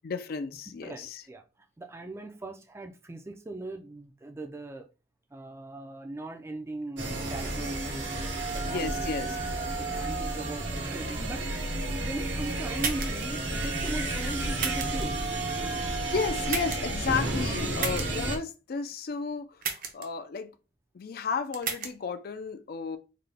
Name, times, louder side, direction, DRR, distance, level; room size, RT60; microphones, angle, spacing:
voice 1, 0.0-1.2 8.6-9.4 15.8-19.6 19.9-20.5 20.9-23.0, left 5 dB, 55° left, 0.4 m, -33 dB
voice 2, 0.8-1.4 1.8-4.9 5.3-8.1 8.5-11.6 12.0-15.1, right 2 dB, 15° right, 0.4 m, -39 dB
sound 1, 7.0-18.4, right 2 dB, 80° right, 1.1 m, -31 dB
sound 2, 12.8-13.3 14.6-15.0 16.5-16.9 17.8-18.1 19.6-20.1 21.5-21.9, right 6 dB, 50° right, 0.7 m, -32 dB
3.8 x 2.2 x 3.3 m
head